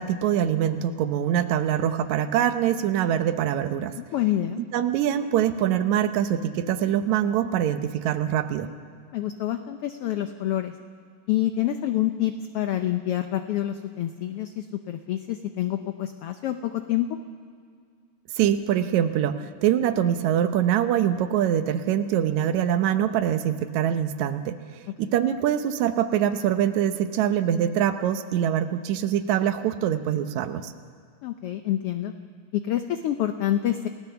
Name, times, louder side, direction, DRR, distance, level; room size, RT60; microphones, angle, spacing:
voice 1, 0.0-3.9 4.6-8.7 18.4-24.5 25.0-30.7, right 10 dB, 75° right, 9 dB, 2.2 m, -24 dB
voice 2, 4.0-4.6 9.1-10.7 11.3-17.1 25.0-25.2 31.2-32.1 32.5-33.9, left 12 dB, 75° left, 8 dB, 1.3 m, -27 dB
29.5 x 16.5 x 7.0 m, 2.1 s
omnidirectional pair, 3.4 m